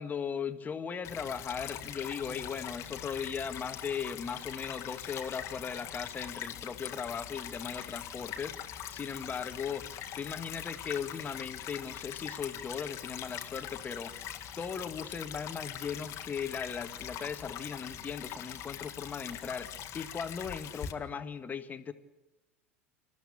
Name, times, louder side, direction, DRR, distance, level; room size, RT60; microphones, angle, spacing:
voice 1, 0.0-9.9 10.1-14.1 14.6-21.9, left 6 dB, 25° left, 10 dB, 1.6 m, -38 dB
Stream / Trickle dribble, 1.0-20.9, left 10 dB, 40° left, 1.8 m, -42 dB
27.5 x 14.0 x 8.6 m, 1.1 s
figure-of-eight pair, 80°, 7 cm